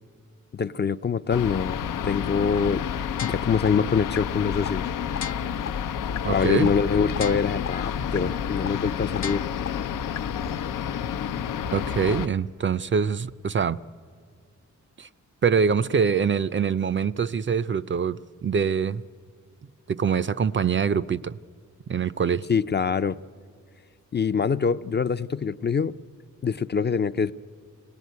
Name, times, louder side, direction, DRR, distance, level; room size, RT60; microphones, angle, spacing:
voice 1, 0.5-2.9 3.2-4.9 6.2-9.5 22.5-23.2 24.1-25.9 26.4-27.3, left 6 dB, 35° left, 0.5 m, -24 dB
sound 1, 1.3-12.3, left 8 dB, 85° left, 0.7 m, -30 dB
sound 2, 3.2-3.7 4.2-4.3 4.7-4.8 5.2-5.7 6.2-6.3 6.7-6.8 7.2-7.7 8.2-8.3 8.7-8.8 9.2-9.7 10.2-10.3, left 8 dB, 60° left, 0.9 m, -33 dB
voice 2, 6.2-6.7 11.7-13.8 15.0-15.1 15.4-19.0 19.9-21.4 21.9-22.5, right 6 dB, 40° right, 0.5 m, -24 dB
24.0 x 18.0 x 9.4 m
cardioid pair, 75°, 31 cm